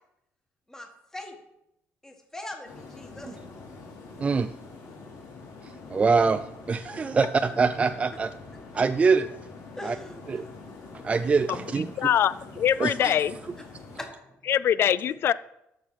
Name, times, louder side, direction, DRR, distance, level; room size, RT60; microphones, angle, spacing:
voice 1, 0.7-1.4 2.0-3.4 9.7-10.2 13.6-14.5, left 1 dB, 10° left, 3 dB, 1.5 m, -42 dB
sound 1, 2.6-14.0, left 3 dB, 85° left, 3.3 m, -45 dB
voice 2, 4.2-4.5 5.6-8.3 8.7-9.3 9.8-10.0 10.3-10.5 11.0-12.1 12.8-13.1, right 4 dB, 25° right, 10 dB, 0.3 m, -24 dB
voice 3, 12.0-13.4 14.5-15.3, left 10 dB, 50° left, 18 dB, 0.4 m, -23 dB
13.0 x 4.7 x 6.3 m, 0.85 s
cardioid pair, 120°, 5 cm